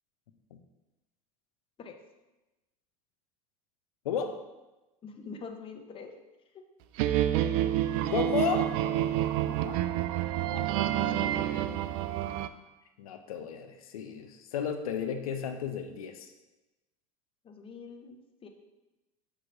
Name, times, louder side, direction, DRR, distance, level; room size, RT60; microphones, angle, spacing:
voice 1, 4.0-4.4 8.1-8.7 9.1-9.2 13.0-16.3, left 7 dB, 85° left, 7 dB, 0.7 m, -33 dB
voice 2, 5.0-6.1 6.5-6.6 9.4-9.8 10.5-11.4 17.4-18.5, left 5 dB, 30° left, 4 dB, 0.9 m, -45 dB
sound 1, 7.0-12.5, right 12 dB, 60° right, 0.4 m, -28 dB
6.7 x 3.0 x 5.3 m, 1.0 s
hypercardioid pair, 90°, 18 cm